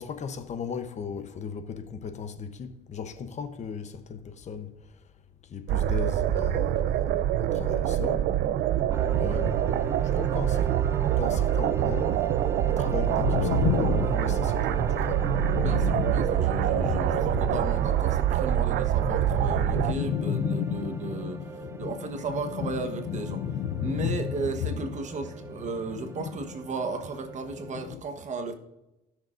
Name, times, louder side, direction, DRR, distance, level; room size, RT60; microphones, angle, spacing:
voice 1, 0.0-4.8 5.5-7.1 7.4-8.3 9.2-10.7 11.2-12.2 12.7-15.4, left 6 dB, 45° left, 0.9 m, -37 dB
sound 1, 5.7-19.9, right 12 dB, 70° right, 0.5 m, -25 dB
sound 2, 8.9-27.9, right 3 dB, 15° right, 0.6 m, -40 dB
sound 3, 12.8-18.1 18.4-27.0 27.3-28.0, left 9 dB, 75° left, 0.6 m, -32 dB
voice 2, 15.5-23.4 23.8-28.5, right 4 dB, 45° right, 1.2 m, -35 dB
17.0 x 6.5 x 2.6 m
cardioid pair, 110°, 17 cm